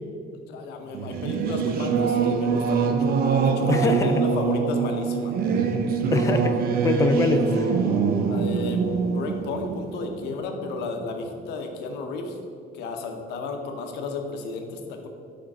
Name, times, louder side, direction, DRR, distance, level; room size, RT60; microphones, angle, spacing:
voice 1, 0.5-5.3 7.3-7.4 8.3-8.8 9.1-12.3 12.7-15.1, left 3 dB, 90° left, 4 dB, 0.8 m, -33 dB
Singing / Musical instrument, 0.9-11.0, right 6 dB, 60° right, 0.6 m, -24 dB
voice 2, 3.7-4.2 6.1-7.8, left 3 dB, 20° left, 7 dB, 0.4 m, -23 dB
5.1 x 4.5 x 5.3 m, 2.4 s
cardioid pair, 110°, 17 cm